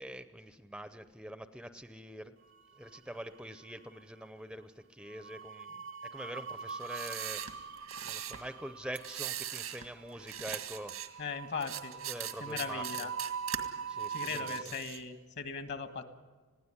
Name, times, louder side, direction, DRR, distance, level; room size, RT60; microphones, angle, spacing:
voice 1, 0.0-2.3 2.7-7.7 8.0-11.2 12.0-13.1 13.9-14.8, equal, 5° right, 11 dB, 0.6 m, -45 dB
sound 1, 2.6-3.4 3.6-3.9 5.1-14.6, right 6 dB, 65° right, 0.8 m, -43 dB
sound 2, 6.7-8.4 8.9-9.9 10.1-11.1 11.6-13.6 14.0-15.0, right 11 dB, 90° right, 1.8 m, -40 dB
voice 2, 11.2-11.9 12.4-13.1 14.1-16.0, left 5 dB, 55° left, 9 dB, 1.6 m, -38 dB
20.5 x 16.0 x 9.8 m, 1.3 s
head